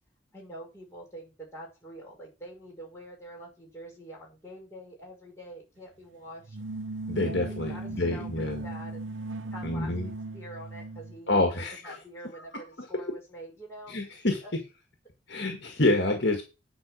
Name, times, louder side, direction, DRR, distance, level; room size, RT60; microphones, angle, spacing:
voice 1, 0.3-6.6 7.1-7.4 7.7-9.1 9.5-13.9 14.4-14.5, equal, 15° left, -3 dB, 5.7 m, -45 dB
sound 1, 6.4-11.2, right 2 dB, 80° right, 0.8 m, -38 dB
voice 2, 7.1-8.7 9.6-10.1 11.3-12.0 13.9-14.6 15.3-16.4, left 2 dB, 55° left, 4 dB, 1.8 m, -27 dB
10.0 x 5.0 x 6.4 m, 0.30 s
head